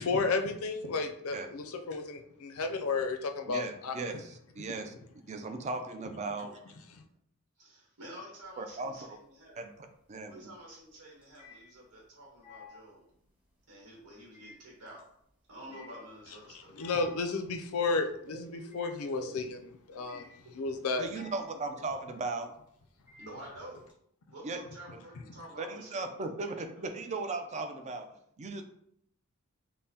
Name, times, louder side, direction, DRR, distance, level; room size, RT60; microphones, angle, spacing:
voice 1, 0.0-4.2 6.9-7.0 16.5-19.6 19.9-20.3 20.6-21.1, left 4 dB, 65° left, 6 dB, 0.4 m, -32 dB
voice 2, 3.5-4.9 5.3-6.7 8.6-9.2 9.6-9.7 10.1-10.5 21.0-22.5 24.4-24.6 25.6-28.1 28.4-28.6, right 3 dB, 30° right, 7 dB, 0.4 m, -37 dB
voice 3, 7.6-9.7 10.3-13.1 13.7-15.0 15.5-17.1 18.2-18.8 19.1-19.4 19.9-20.0 20.5-20.7 21.7-21.8 23.2-23.8 24.3-27.2, right 1 dB, 90° right, -3 dB, 1.1 m, -49 dB
sound 1, 8.4-9.1 9.4-23.9, left 4 dB, 5° right, 1.1 m, -56 dB
5.4 x 2.1 x 2.7 m, 0.70 s
head